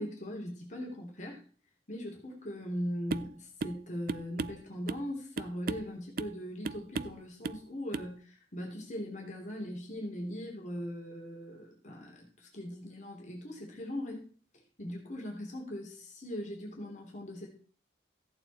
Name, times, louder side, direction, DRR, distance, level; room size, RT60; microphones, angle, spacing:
voice 1, 0.0-1.4 1.9-14.3 14.8-17.5, equal, 40° left, 0 dB, 3.1 m, -40 dB
sound 1, 3.1-3.3 3.6-3.8 4.1-5.1 5.4-5.9 6.2-6.4 6.6-7.2 7.4-7.6 7.9-8.1, right 4 dB, 50° right, 0.5 m, -36 dB
14.5 x 8.9 x 4.3 m, 0.42 s
head